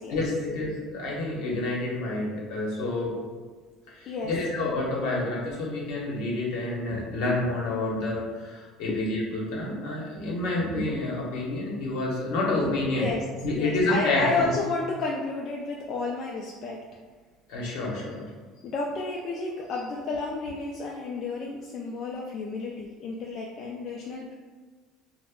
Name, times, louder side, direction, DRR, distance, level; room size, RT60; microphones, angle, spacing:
voice 1, 0.1-3.1 3.9-13.1 13.4-14.5 17.5-18.3, left 2 dB, 80° left, -3 dB, 0.8 m, -28 dB
voice 2, 13.5-16.8 18.6-24.3, left 3 dB, 55° left, -2 dB, 0.3 m, -31 dB
2.3 x 2.0 x 3.5 m, 1.4 s
supercardioid pair, 100°, 0 cm